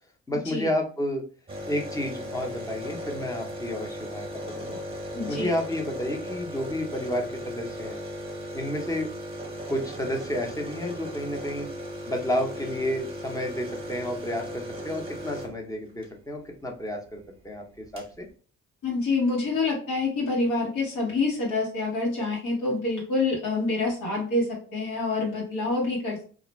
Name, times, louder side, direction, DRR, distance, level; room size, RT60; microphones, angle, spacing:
voice 1, 0.3-1.2 1.7-4.8 5.3-8.0 8.5-9.1 9.7-11.7 12.1-18.3, left 1 dB, 10° left, 1 dB, 0.7 m, -31 dB
sound 1, 1.5-16.1 17.4-17.5 17.7-18.1, equal, 20° right, 0.9 m, -37 dB
voice 2, 5.1-5.5 18.8-26.2, left 3 dB, 80° left, -3 dB, 1.2 m, -27 dB
2.4 x 2.1 x 3.0 m, 0.40 s
cardioid pair, 90°, 30 cm